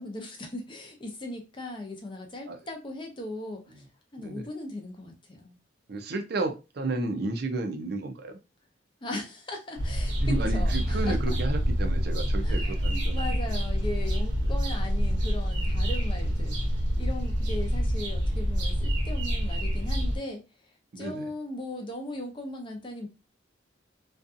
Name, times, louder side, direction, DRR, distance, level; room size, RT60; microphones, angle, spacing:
voice 1, 0.0-3.9 4.1-5.6 9.0-11.2 12.4-16.6 17.0-23.1, left 1 dB, 25° left, 3 dB, 0.6 m, -38 dB
voice 2, 5.9-8.4 10.2-13.4 14.4-14.5 20.9-21.3, right 2 dB, 55° right, 6 dB, 0.5 m, -32 dB
sound 1, 9.8-20.2, equal, 75° right, 0.8 m, -27 dB
2.5 x 2.3 x 2.5 m, 0.27 s
head